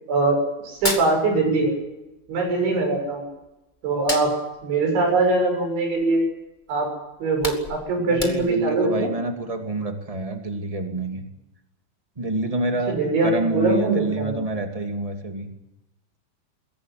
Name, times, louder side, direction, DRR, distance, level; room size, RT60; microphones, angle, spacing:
voice 1, 0.1-1.7 2.3-3.3 3.8-4.3 4.6-6.2 6.7-6.9 7.2-9.1 12.9-14.3, right 2 dB, 75° right, 2 dB, 9.3 m, -22 dB
Hands, 0.6-1.9 2.2-3.5 3.9-6.2 6.6-6.8 7.1-8.8, left 2 dB, 25° left, 1.0 m, -32 dB
voice 2, 8.0-11.2 12.2-15.5, right 2 dB, 15° right, 5 dB, 1.1 m, -27 dB
22.0 x 17.5 x 9.5 m, 0.96 s
omnidirectional pair, 5.4 m